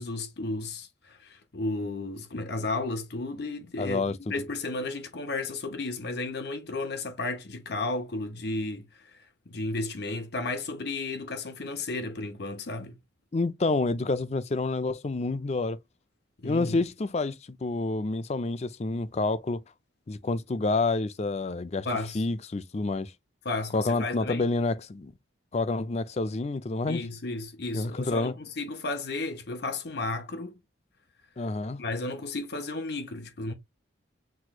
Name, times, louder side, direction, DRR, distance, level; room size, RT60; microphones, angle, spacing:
voice 1, 0.0-13.0 16.4-16.8 21.8-22.2 23.4-24.5 26.9-30.6 31.8-33.5, left 2 dB, 55° left, 0.8 m, -33 dB
voice 2, 3.8-4.2 13.3-15.8 16.4-19.6 20.1-21.9 22.1-23.1 23.7-25.1 25.5-27.0 27.7-28.3 31.4-31.8, left 3 dB, 35° left, 0.4 m, -28 dB
6.1 x 3.0 x 2.3 m
head